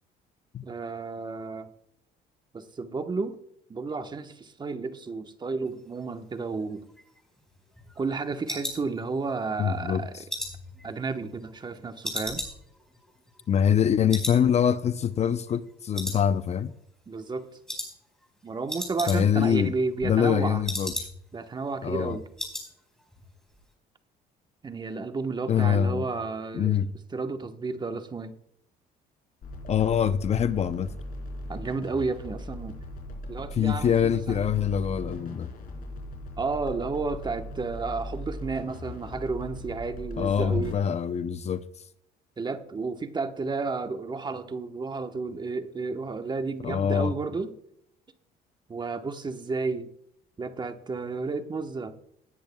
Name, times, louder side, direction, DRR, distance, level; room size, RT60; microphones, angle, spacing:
voice 1, 0.6-1.7 2.5-3.4 3.7-6.8 8.0-10.1 10.8-12.4 17.1-17.5 18.4-20.6 21.3-22.2 24.6-26.8 27.1-28.3 31.5-32.8 33.3-34.5 36.4-40.7 42.4-47.5 48.7-49.9 50.4-52.0, right 4 dB, 25° right, 1.1 m, -32 dB
sound 1, 6.8-9.5 9.9-11.7 12.0-13.8 14.1-14.4 14.7-14.8 15.3-15.7 15.9-16.7 17.0-17.3 17.7-17.9 18.2-18.3 18.5-19.5 19.8-21.4 21.7-21.8 22.1-22.7 23.0-23.3 23.5-23.6, left 1 dB, 5° left, 4.6 m, -36 dB
voice 2, 9.6-10.2 13.5-16.7 19.1-19.7 20.0-20.9 21.8-22.2 25.5-26.1 26.5-26.9 29.7-30.9 33.6-35.5 40.2-41.6 46.6-47.1, left 8 dB, 40° left, 0.6 m, -24 dB
sound 2, 29.4-40.7, left 1 dB, 60° left, 4.2 m, -39 dB
18.5 x 10.5 x 2.2 m
cardioid pair, 110°, 17 cm